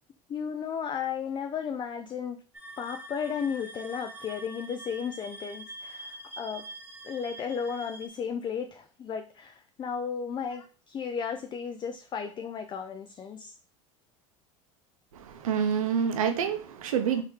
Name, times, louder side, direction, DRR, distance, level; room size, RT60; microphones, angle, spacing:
voice 1, 0.3-2.4 2.8-6.6 7.0-13.5, left 7 dB, 30° left, 0.4 m, -34 dB
sound 1, 2.5-8.1, right 1 dB, 10° right, 0.7 m, -44 dB
voice 2, 15.1-17.2, right 7 dB, 90° right, 0.7 m, -27 dB
3.7 x 2.8 x 3.1 m
hypercardioid pair, 90°, 17 cm